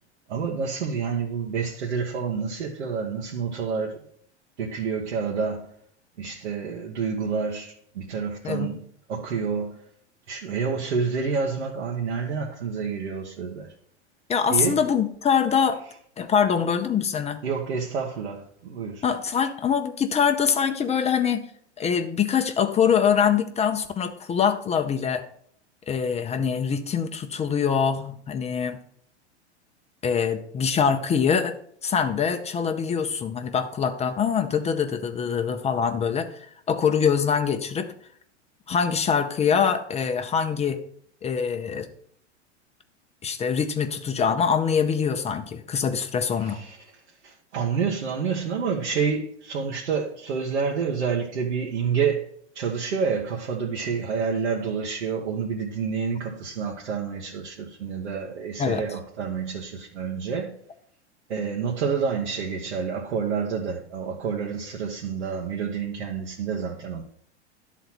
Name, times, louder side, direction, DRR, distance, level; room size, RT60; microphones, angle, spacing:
voice 1, 0.3-4.0 4.6-5.7 6.2-8.8 9.1-9.7 10.3-13.7 14.5-14.9 17.4-19.0 46.4-46.9 47.2-52.3 52.5-60.6 61.3-67.0, right 6 dB, 75° right, 1.3 m, -28 dB
voice 2, 14.3-15.8 16.2-17.4 19.0-21.4 21.8-25.2 25.9-28.8 30.0-31.6 31.8-37.9 38.7-40.8 41.2-41.9 43.2-46.6 58.6-58.8, left 7 dB, 20° left, 0.6 m, -24 dB
11.5 x 4.1 x 6.0 m
hypercardioid pair, 95°, 34 cm